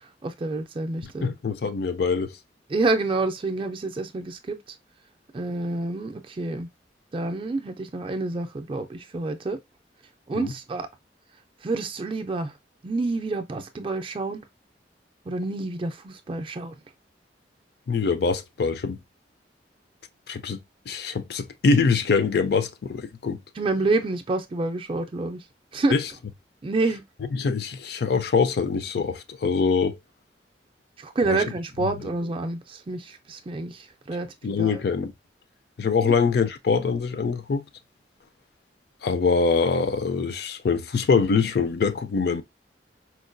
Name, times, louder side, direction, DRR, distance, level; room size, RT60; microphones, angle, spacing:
voice 1, 0.2-1.3 2.7-4.6 5.3-6.7 7.1-9.6 10.3-10.9 11.6-12.5 12.8-14.4 15.3-16.7 23.6-25.4 25.7-26.0 26.6-27.0 31.0-34.8 36.0-36.1, right 3 dB, 30° right, 0.4 m, -28 dB
voice 2, 1.2-2.3 10.3-10.5 17.9-19.0 20.3-20.6 20.9-23.4 25.9-26.0 27.3-30.0 31.2-31.4 34.4-35.1 35.8-37.6 39.0-42.4, left 5 dB, 60° left, 0.4 m, -24 dB
4.5 x 2.2 x 2.5 m
head